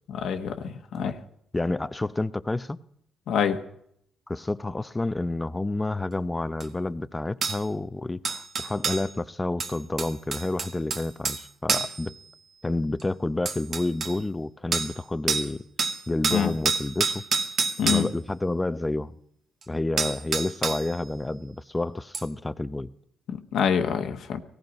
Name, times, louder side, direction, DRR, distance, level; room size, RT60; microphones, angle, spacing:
voice 1, 0.2-1.1 3.3-3.6 16.3-16.5 17.8-18.1 23.5-24.4, left 7 dB, 70° left, 1.2 m, -25 dB
voice 2, 1.5-2.8 4.3-12.1 12.6-15.7 16.1-17.2 17.8-19.2 19.7-22.9, left 2 dB, 15° left, 0.6 m, -29 dB
sound 1, 6.6-6.7 7.4-7.6 8.2-9.1 9.6-11.4 11.7-12.0 13.0-13.1 13.4-14.1 14.7-15.0 15.3-15.5 15.8-18.1 19.6-19.7 20.0-20.9 22.1-22.2, right 5 dB, 55° right, 1.7 m, -27 dB
18.0 x 15.0 x 5.3 m
cardioid pair, 90°, 0 cm